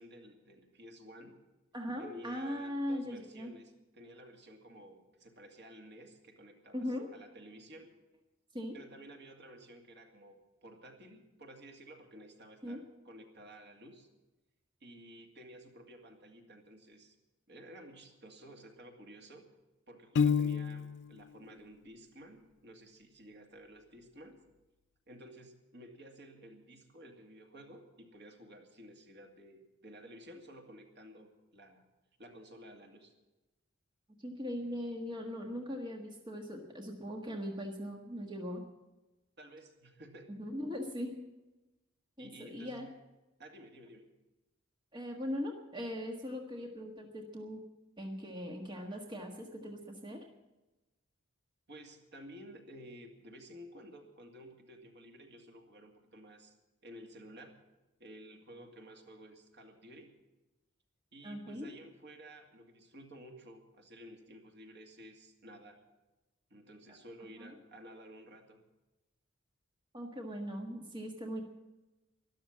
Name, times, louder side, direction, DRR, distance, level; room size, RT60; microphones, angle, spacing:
voice 1, 0.0-1.4 2.0-8.0 8.7-14.1 14.8-17.1 17.5-19.5 19.9-24.4 25.1-31.8 32.2-33.1 39.4-40.3 42.2-42.9 43.4-44.1 51.7-56.5 56.8-57.6 58.0-60.2 61.1-65.8 66.5-68.6, equal, 55° right, 3 dB, 2.3 m, -53 dB
voice 2, 1.7-3.5 6.7-7.1 8.5-8.8 12.6-12.8 34.2-38.6 40.3-41.2 42.2-42.9 44.9-47.6 48.0-50.2 61.2-61.7 67.4-67.5 69.9-71.4, equal, 25° right, 1 dB, 1.5 m, -40 dB
Piano, 20.2-21.1, left 6 dB, 60° left, 0.4 m, -29 dB
13.0 x 12.0 x 7.4 m, 1.1 s
head